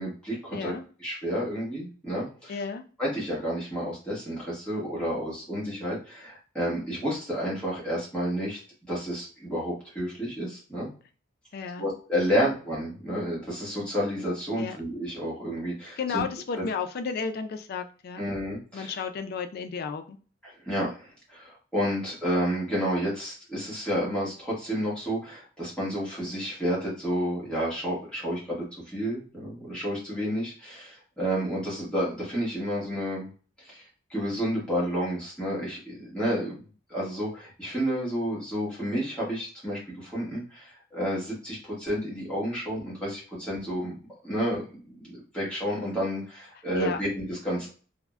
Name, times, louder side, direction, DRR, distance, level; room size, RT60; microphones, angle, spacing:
voice 1, 0.0-0.7 1.0-2.6 3.0-8.6 8.9-10.9 11.8-16.2 16.5-16.6 18.2-19.0 20.4-33.3 33.6-33.8 34.1-36.6 36.9-43.9 44.2-44.9 45.3-47.7, equal, 5° left, -7 dB, 1.1 m, -30 dB
voice 2, 0.5-0.8 2.5-2.8 11.5-11.9 12.3-12.4 14.6-14.8 16.0-18.2 18.7-20.2 46.8-47.0, left 5 dB, 50° left, 7 dB, 0.3 m, -33 dB
3.4 x 2.1 x 2.3 m, 0.38 s
head